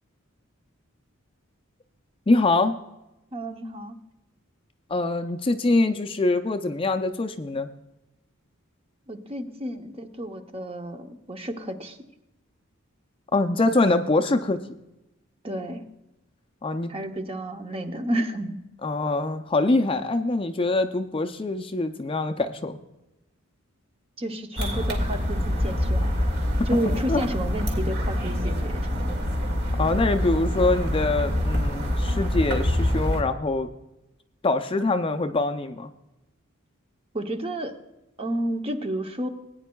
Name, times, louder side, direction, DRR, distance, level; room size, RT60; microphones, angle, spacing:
voice 1, 2.3-2.8 4.9-7.7 13.3-14.6 16.6-16.9 18.8-22.8 26.9-27.2 29.8-33.7 34.4-35.9, left 2 dB, 25° left, 7 dB, 0.4 m, -24 dB
voice 2, 3.3-4.0 9.1-12.0 15.4-15.8 16.9-18.6 24.2-26.2 26.7-29.1 37.1-37.7 38.2-39.3, right 1 dB, 25° right, 6 dB, 0.7 m, -31 dB
sound 1, 24.6-33.2, left 1 dB, 50° right, 1.9 m, -25 dB
18.5 x 9.4 x 2.3 m, 0.93 s
head